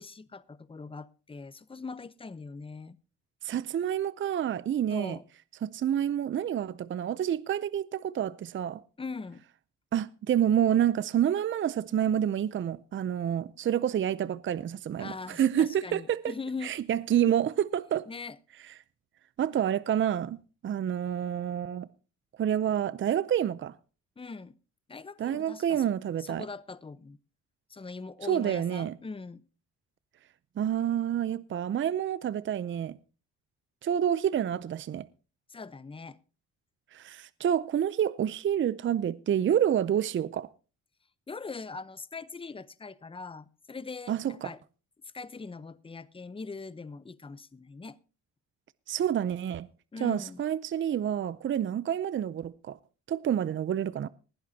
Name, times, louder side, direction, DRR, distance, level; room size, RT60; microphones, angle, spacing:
voice 1, 0.0-3.0 4.9-5.2 9.0-9.4 15.0-16.7 18.1-18.4 24.2-24.5 24.9-25.8 26.2-27.2 27.7-29.4 35.5-36.2 41.3-44.6 45.1-48.0 49.9-50.4, left 4 dB, 20° left, 0.8 m, -41 dB
voice 2, 3.4-5.2 5.6-8.8 9.9-16.3 16.6-18.1 19.4-20.4 20.6-21.9 22.4-23.7 25.2-26.5 28.3-29.0 30.6-33.0 33.8-35.1 36.9-40.5 44.1-44.5 48.9-49.7 50.0-52.8 53.1-54.1, right 10 dB, 40° right, 0.5 m, -28 dB
19.5 x 11.5 x 2.8 m
cardioid pair, 90°, 30 cm